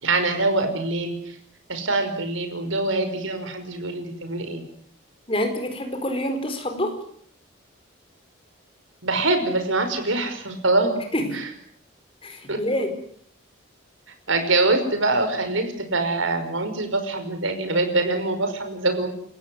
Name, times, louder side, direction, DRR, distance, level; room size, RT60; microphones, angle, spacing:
voice 1, 0.0-1.1 1.7-4.6 9.0-10.9 11.3-11.4 12.5-12.6 14.3-19.1, right 2 dB, 80° right, 7 dB, 5.5 m, -24 dB
voice 2, 5.3-7.0 11.1-11.4 12.2-13.0, equal, 25° left, 6 dB, 4.7 m, -26 dB
29.5 x 15.5 x 9.5 m, 0.64 s
head